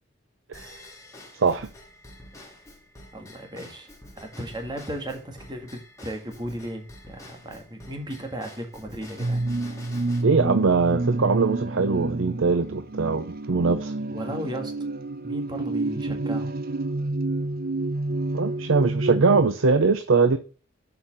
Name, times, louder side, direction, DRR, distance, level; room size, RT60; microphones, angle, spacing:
Drum kit / Drum / Bell, 0.5-10.2, left 1 dB, 15° left, 2.0 m, -48 dB
voice 1, 3.1-3.9 4.2-9.4 14.1-14.7 15.2-16.5, equal, 25° right, 3 dB, 1.8 m, -35 dB
sound 1, 9.2-19.4, right 2 dB, 50° right, 0.6 m, -29 dB
voice 2, 10.2-13.9 18.3-20.4, right 4 dB, 90° right, 10 dB, 0.6 m, -22 dB
6.9 x 5.5 x 7.3 m, 0.37 s
head